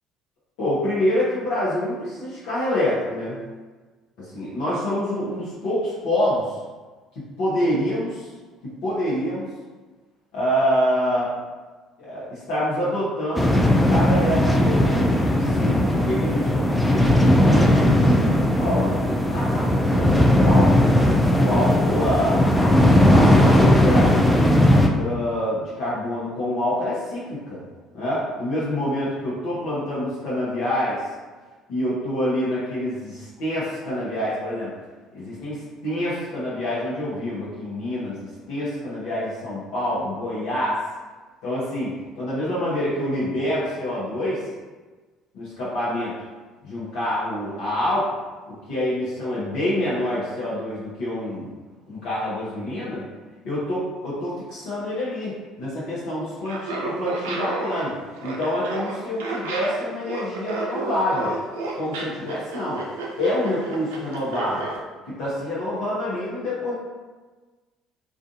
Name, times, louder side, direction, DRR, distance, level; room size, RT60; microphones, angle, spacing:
voice 1, 0.6-3.4 4.2-6.6 7.1-8.3 8.6-9.5 10.3-11.3 12.0-17.1 17.4-20.8 21.3-22.4 22.7-22.8 23.1-24.5 24.9-27.6 27.9-31.0 31.7-34.7 35.1-40.8 41.4-44.4 45.3-46.1 46.6-48.1 48.5-51.5 51.9-53.0 53.4-61.3 61.8-62.8 63.2-64.7 65.1-66.7, left 1 dB, 70° left, -10 dB, 0.8 m, -26 dB
sound 1, 13.3-24.9, left 1 dB, 5° left, 0.4 m, -17 dB
Laughter, 56.5-64.8, right 3 dB, 80° right, 0.4 m, -31 dB
2.4 x 2.4 x 2.6 m, 1.3 s
hypercardioid pair, 65°, 0 cm